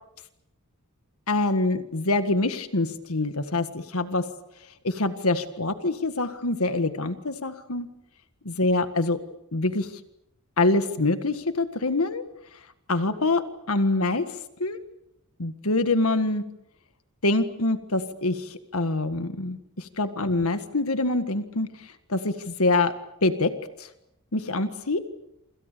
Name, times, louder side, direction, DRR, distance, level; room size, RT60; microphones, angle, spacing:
voice 1, 1.3-4.3 4.8-7.9 8.5-9.2 9.5-9.9 10.6-12.2 12.9-13.4 13.7-14.2 14.6-14.8 15.4-16.4 17.2-22.9 23.2-23.5 23.8-23.9 24.3-25.0, left 2 dB, 75° left, 10 dB, 1.8 m, -25 dB
28.0 x 26.5 x 6.9 m, 0.80 s
head